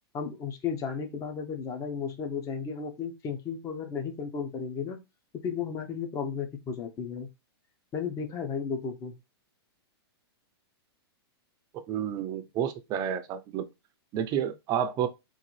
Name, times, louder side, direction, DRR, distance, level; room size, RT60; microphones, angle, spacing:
voice 1, 0.1-5.0 5.4-7.3 7.9-9.1, left 6 dB, 25° left, 0.7 m, -34 dB
voice 2, 11.7-13.7 14.1-15.1, right 9 dB, 30° right, 0.5 m, -30 dB
3.8 x 2.5 x 3.1 m
hypercardioid pair, 130°, 14 cm